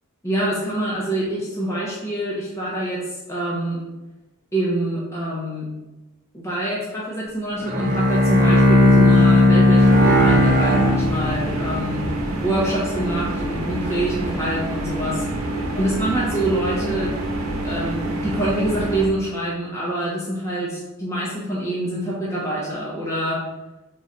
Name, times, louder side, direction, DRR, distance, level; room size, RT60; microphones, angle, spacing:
voice 1, 0.2-3.0 3.3-3.8 4.5-5.7 6.3-12.1 12.4-15.2 15.7-17.1 17.6-23.4, right 1 dB, 15° left, -6 dB, 0.7 m, -26 dB
Bowed string instrument, 7.6-11.7, left 1 dB, 40° right, 0.8 m, -15 dB
sound 1, 9.8-19.1, right 1 dB, 75° right, 0.8 m, -27 dB
3.8 x 3.1 x 3.9 m, 1.1 s
head